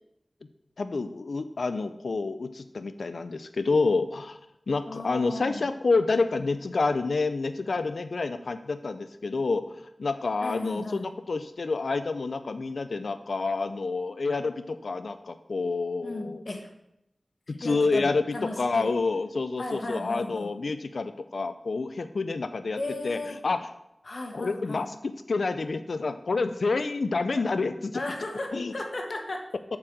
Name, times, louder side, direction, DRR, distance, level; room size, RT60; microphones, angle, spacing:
voice 1, 0.8-4.4 4.7-16.4 17.5-22.8 23.0-23.7 24.3-28.0 28.5-28.7, left 3 dB, 85° left, 10 dB, 0.4 m, -28 dB
voice 2, 4.9-5.6 10.4-11.1 16.0-16.7 17.5-18.9 19.6-20.5 22.8-23.4 24.0-24.9 27.3-27.4 27.9-29.4, left 2 dB, 65° left, 2 dB, 1.5 m, -35 dB
7.1 x 4.8 x 6.5 m, 0.84 s
wide cardioid pair, 60°, 0 cm